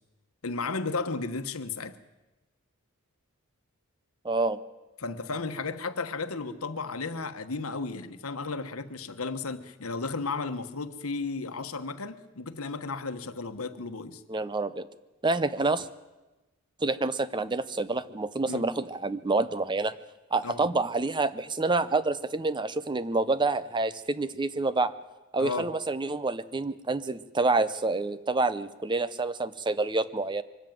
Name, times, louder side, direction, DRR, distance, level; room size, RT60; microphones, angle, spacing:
voice 1, 0.4-1.9 5.0-14.2 18.5-18.6 20.4-20.6 25.4-25.7, left 4 dB, 85° left, 1.2 m, -34 dB
voice 2, 4.2-4.6 14.3-14.9 15.2-15.9 16.8-19.9 20.3-24.9 25.3-30.4, right 3 dB, 20° right, 0.6 m, -28 dB
24.0 x 14.0 x 9.1 m
head